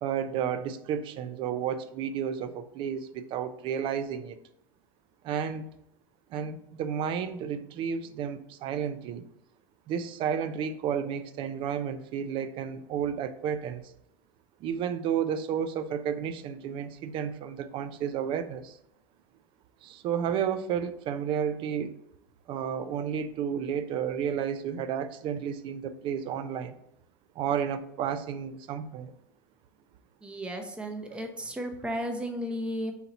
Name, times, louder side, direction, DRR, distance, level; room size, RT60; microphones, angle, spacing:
voice 1, 0.0-4.4 5.2-5.7 6.3-9.2 9.9-13.8 14.6-18.8 19.8-22.0 22.5-26.8 27.4-29.1, right 8 dB, 50° right, 0.4 m, -32 dB
voice 2, 30.2-32.9, equal, 10° right, 0.7 m, -34 dB
4.0 x 2.8 x 4.1 m
supercardioid pair, 105°, 11 cm